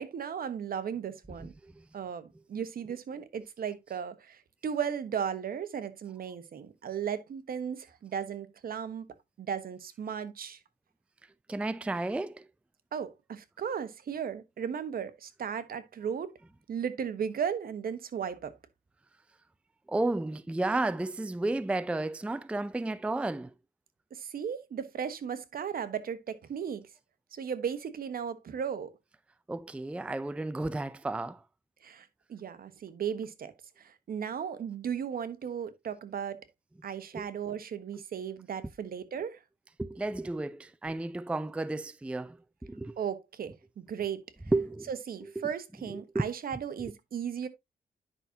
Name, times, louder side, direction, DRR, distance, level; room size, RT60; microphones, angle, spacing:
voice 1, 0.0-1.5 1.9-9.1 9.4-10.6 12.9-16.4 16.7-18.5 24.1-26.8 27.3-28.9 31.8-36.4 36.8-39.4 43.0-44.2 44.9-47.5, right 7 dB, 65° right, 1.1 m, -36 dB
voice 2, 1.4-1.8 11.5-12.5 19.9-23.5 29.5-31.4 37.1-37.3 39.8-43.0 44.5-44.9 45.4-45.5 45.9-46.3, right 2 dB, 5° right, 0.4 m, -32 dB
10.0 x 5.9 x 2.7 m
cardioid pair, 95°, 16 cm